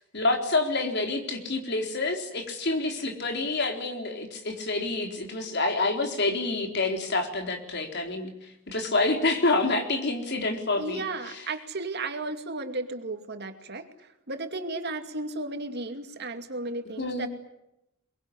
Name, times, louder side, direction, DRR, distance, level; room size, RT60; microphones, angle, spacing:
voice 1, 0.1-8.3 8.7-11.0 17.0-17.3, left 2 dB, 55° left, 4 dB, 4.1 m, -27 dB
voice 2, 10.8-13.9 14.3-17.3, right 2 dB, 55° right, 6 dB, 2.5 m, -34 dB
23.5 x 22.0 x 10.0 m, 0.85 s
head